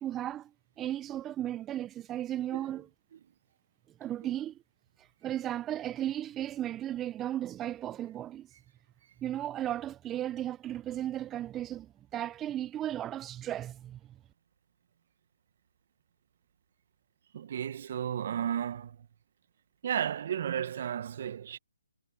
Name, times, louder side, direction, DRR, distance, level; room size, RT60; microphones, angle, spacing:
voice 1, 0.0-0.5 0.8-2.9 4.0-4.6 5.0-8.5 9.2-14.0, right 12 dB, 15° right, 0.4 m, -35 dB
voice 2, 17.3-19.0 19.8-21.6, right 9 dB, 45° right, 1.0 m, -33 dB
figure-of-eight pair, 150°, 0 cm